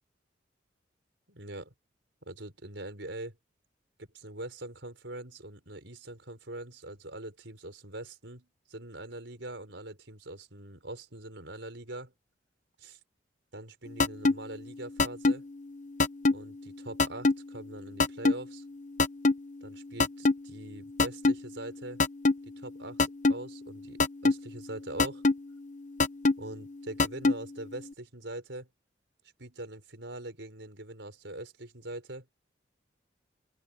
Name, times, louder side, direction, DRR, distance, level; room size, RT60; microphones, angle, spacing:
voice 1, 1.3-1.7 2.2-3.4 4.0-12.1 12.8-13.0 13.5-15.4 16.3-18.6 19.6-22.0 22.6-23.0 23.3-25.2 26.4-28.7 29.4-32.3, right 1 dB, 70° right, 4.9 m, -43 dB
sound 1, 14.0-14.3 15.0-15.3 16.0-16.3 17.0-17.3 18.0-18.3 19.0-19.3 20.0-20.3 21.0-21.3 22.0-22.3 23.0-23.3 24.0-24.3 25.0-25.3 26.0-26.3 27.0-27.3, left 3 dB, 40° left, 0.9 m, -21 dB
open air
head